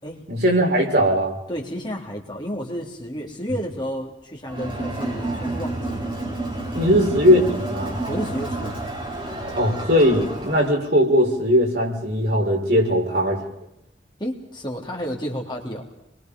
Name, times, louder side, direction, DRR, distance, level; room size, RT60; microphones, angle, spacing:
voice 1, 0.3-1.4 6.7-8.0 9.5-13.4, equal, 60° right, -1 dB, 6.2 m, -19 dB
voice 2, 1.5-6.2 8.1-8.8 14.2-15.8, equal, 25° left, 0 dB, 3.3 m, -31 dB
Crowd, 4.5-10.8, right 2 dB, 30° right, 5.9 m, -30 dB
29.5 x 22.5 x 5.4 m, 0.79 s
head